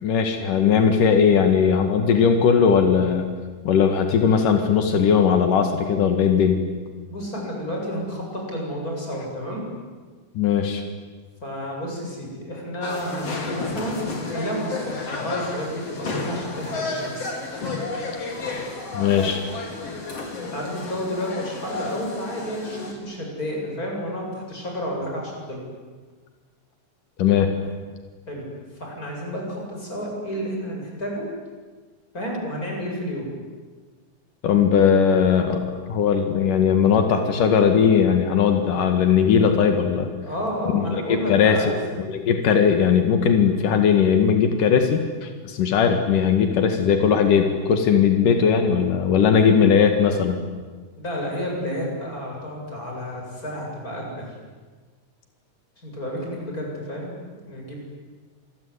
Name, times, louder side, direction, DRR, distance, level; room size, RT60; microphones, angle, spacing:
voice 1, 0.0-3.3 3.7-6.6 10.4-10.8 18.9-19.4 27.2-27.6 34.4-40.1 40.7-41.6 42.1-50.4, left 7 dB, 85° left, 6 dB, 3.5 m, -19 dB
voice 2, 7.1-9.6 11.4-17.3 20.5-25.6 28.3-28.5 28.7-31.2 32.1-33.3 40.2-41.8 51.0-54.3 55.8-57.1 57.4-57.8, equal, 25° left, -1 dB, 8.4 m, -31 dB
sound 1, 12.8-22.9, left 3 dB, 50° left, 4.6 m, -32 dB
27.5 x 22.0 x 9.8 m, 1.4 s
omnidirectional pair, 3.6 m